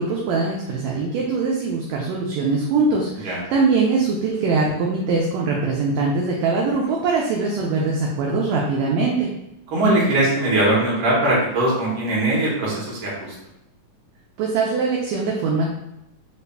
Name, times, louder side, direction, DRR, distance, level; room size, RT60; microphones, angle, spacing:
voice 1, 0.0-9.3 14.4-15.7, right 4 dB, 80° right, -2 dB, 1.6 m, -22 dB
voice 2, 9.7-13.3, right 1 dB, 60° right, -6 dB, 1.4 m, -20 dB
5.2 x 2.4 x 2.2 m, 0.82 s
omnidirectional pair, 3.6 m